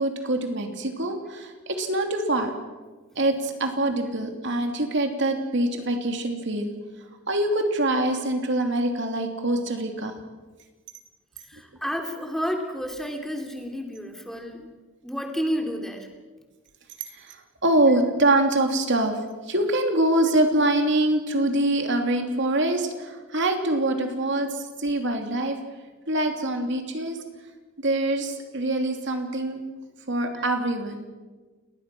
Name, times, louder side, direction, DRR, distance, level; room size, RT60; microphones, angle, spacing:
voice 1, 0.0-2.5 3.2-6.7 7.3-10.1 17.1-17.4 17.6-19.2 19.5-25.6 26.1-27.2 27.8-29.6 30.1-31.1, right 1 dB, 60° right, 4 dB, 3.0 m, -24 dB
voice 2, 11.5-14.8 15.0-16.1 30.3-30.4, equal, ahead, 3 dB, 3.0 m, -31 dB
29.5 x 20.5 x 6.2 m, 1.3 s
head